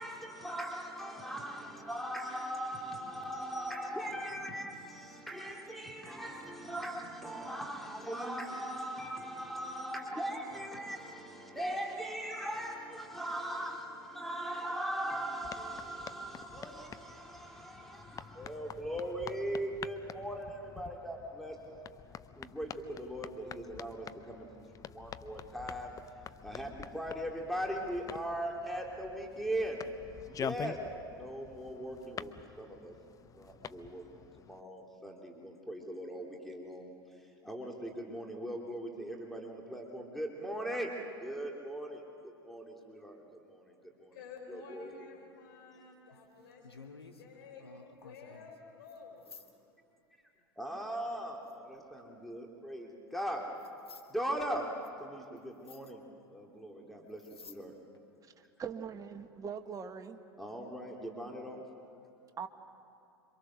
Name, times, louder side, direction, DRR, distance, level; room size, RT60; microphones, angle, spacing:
voice 1, 0.0-21.5 22.4-24.5 24.8-25.9 26.4-29.8 30.3-30.8 31.0-32.3 32.6-32.9 33.4-34.0 34.4-36.9 37.4-40.9 41.2-42.0 42.4-43.2 43.5-43.6 44.0-44.1 44.5-44.9 50.6-53.4 54.1-54.7 55.0-56.0 56.3-57.2 57.5-57.7 60.4-61.6, right 1 dB, ahead, 0 dB, 3.2 m, -39 dB
sound 1, 15.4-34.6, left 8 dB, 25° left, 0.7 m, -47 dB
voice 2, 44.1-47.7 48.0-49.7, left 4 dB, 65° left, 2 dB, 5.1 m, -52 dB
sound 2, 46.1-47.2 47.6-48.6 48.9-49.0 49.2-49.5 51.5-52.0 53.2-53.3 53.6-54.1 54.8-54.9 55.4-55.5 55.6-55.9 57.1-57.6 57.9-58.0, left 4 dB, 85° left, 1.6 m, -53 dB
voice 3, 58.6-60.2 62.4-62.5, right 6 dB, 25° right, 7 dB, 1.6 m, -41 dB
27.0 x 24.5 x 6.5 m, 2.5 s
figure-of-eight pair, 80°, 13 cm